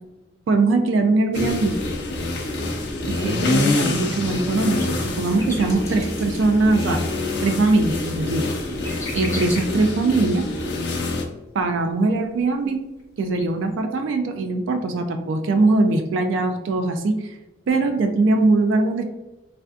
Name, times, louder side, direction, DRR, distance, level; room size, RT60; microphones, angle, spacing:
voice 1, 0.5-1.8 3.1-7.0 7.4-8.5 8.9-10.5 11.5-12.8 13.2-17.4 17.7-19.0, right 3 dB, 80° right, 6 dB, 0.3 m, -21 dB
sound 1, 1.3-11.2, left 2 dB, 60° left, 0.5 m, -26 dB
sound 2, 4.8-10.1 10.9-11.0 12.4-12.5 13.0-13.4 13.7-13.8, left 2 dB, 15° left, 0.7 m, -37 dB
3.3 x 2.5 x 2.3 m, 1.0 s
head